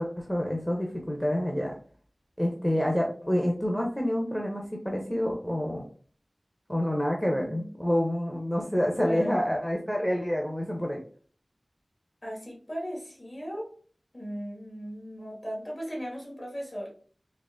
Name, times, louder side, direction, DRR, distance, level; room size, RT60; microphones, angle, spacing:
voice 1, 0.0-1.7 2.4-5.8 6.7-11.0, equal, 10° left, 0 dB, 0.6 m, -28 dB
voice 2, 7.3-7.7 9.0-9.4 12.2-13.7 14.1-16.9, equal, 45° left, -2 dB, 1.6 m, -36 dB
4.1 x 2.8 x 2.4 m, 0.43 s
wide cardioid pair, 60°, 0 cm